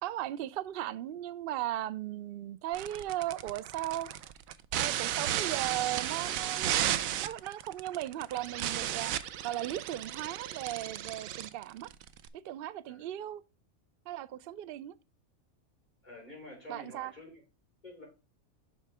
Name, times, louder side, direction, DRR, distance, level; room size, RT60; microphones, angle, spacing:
voice 1, 0.0-4.1 4.7-9.1 9.4-11.9 12.4-13.4 14.1-14.9 16.7-17.1, right 13 dB, 65° right, 0.6 m, -37 dB
sound 1, 2.7-12.3, right 11 dB, 85° right, 1.0 m, -34 dB
voice 2, 16.0-17.4 17.8-18.0, left 1 dB, 35° left, 4.5 m, -48 dB
7.9 x 5.6 x 3.3 m
omnidirectional pair, 1.4 m